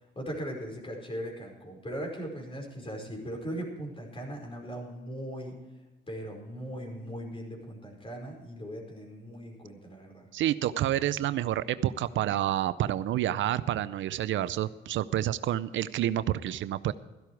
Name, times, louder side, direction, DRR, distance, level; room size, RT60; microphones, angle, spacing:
voice 1, 0.1-5.5 6.1-10.3, equal, 25° left, 1 dB, 4.9 m, -39 dB
voice 2, 10.3-16.9, right 12 dB, 75° right, 15 dB, 0.5 m, -29 dB
14.0 x 12.0 x 4.7 m, 1.1 s
cardioid pair, 90°, 20 cm